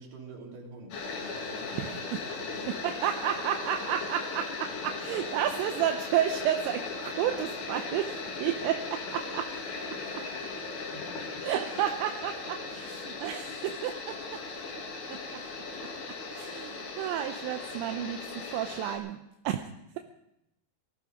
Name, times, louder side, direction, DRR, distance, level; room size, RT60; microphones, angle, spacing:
voice 1, 0.0-2.9 10.9-11.5, right 2 dB, 50° right, -1 dB, 4.5 m, -47 dB
sound 1, 0.9-19.0, left 4 dB, 65° left, 4.6 m, -38 dB
voice 2, 1.7-2.2 2.8-9.5 11.4-14.4 15.1-15.4 16.3-19.2 19.4-19.6, right 10 dB, 80° right, 5 dB, 3.0 m, -31 dB
19.0 x 14.0 x 5.1 m, 0.83 s
omnidirectional pair, 5.4 m